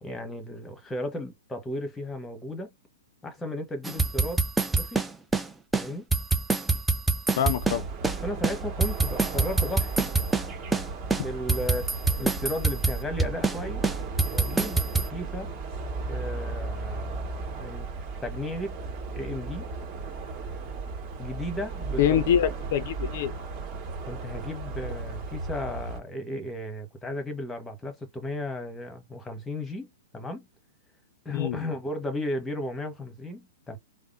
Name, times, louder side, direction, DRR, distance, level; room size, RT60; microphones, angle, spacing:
voice 1, 0.0-2.7 3.2-4.4 4.7-5.0 5.7-6.1 8.2-10.1 11.2-11.9 12.2-13.8 14.2-15.5 16.1-17.9 18.2-18.8 19.1-19.7 21.2-22.2 24.1-30.5 31.2-33.8, left 1 dB, 10° left, 1.1 m, -35 dB
sound 1, 3.8-5.5 5.7-5.9 6.1-8.2 8.4-10.5 10.7-10.9 11.1-13.6 13.8-15.1, right 3 dB, 10° right, 0.5 m, -25 dB
voice 2, 7.4-7.8 22.0-23.4 31.3-31.6, left 10 dB, 55° left, 0.4 m, -25 dB
sound 2, 7.6-26.0, right 4 dB, 35° right, 1.7 m, -35 dB
3.4 x 2.0 x 2.5 m
hypercardioid pair, 125°, 0 cm